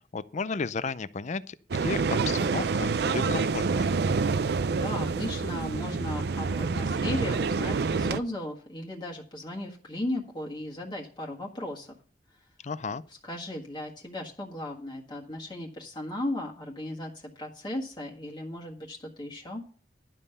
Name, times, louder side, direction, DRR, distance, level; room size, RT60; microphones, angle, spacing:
voice 1, 0.0-3.9 12.6-13.0, left 4 dB, 40° left, 0.5 m, -34 dB
sound 1, 1.7-8.2, right 4 dB, 65° right, 0.5 m, -27 dB
voice 2, 4.7-11.9 13.2-19.6, left 1 dB, 25° left, 1.6 m, -36 dB
12.0 x 5.5 x 6.8 m
head